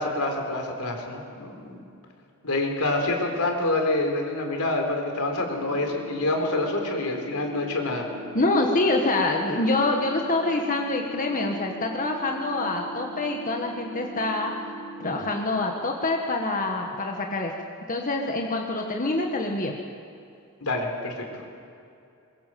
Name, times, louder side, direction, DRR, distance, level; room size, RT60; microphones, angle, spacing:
voice 1, 0.0-1.8 2.4-8.1 20.6-21.4, left 2 dB, 80° left, 3 dB, 4.0 m, -27 dB
sound 1, 5.4-15.4, right 2 dB, ahead, 4.3 m, -41 dB
voice 2, 8.3-14.5 15.0-17.5 17.9-19.8, left 2 dB, 40° left, 1 dB, 1.7 m, -26 dB
23.0 x 21.5 x 7.7 m, 2.6 s
head